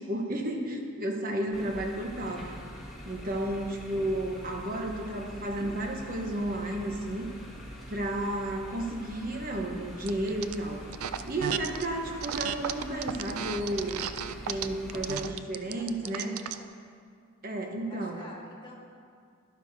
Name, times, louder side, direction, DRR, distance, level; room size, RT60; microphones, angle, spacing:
voice 1, 0.0-2.6 3.0-7.3 7.9-10.8 11.2-14.1 14.5-16.3 17.4-18.3, right 1 dB, 45° right, 2 dB, 1.0 m, -32 dB
sound 1, 1.5-15.2, equal, ahead, 1.4 m, -44 dB
sound 2, 10.1-10.5 10.9-11.9 12.2-16.6, right 9 dB, 90° right, 0.4 m, -34 dB
voice 2, 15.6-16.8 17.9-18.7, left 1 dB, 25° left, -3 dB, 1.4 m, -50 dB
12.0 x 11.5 x 2.7 m, 2.2 s
head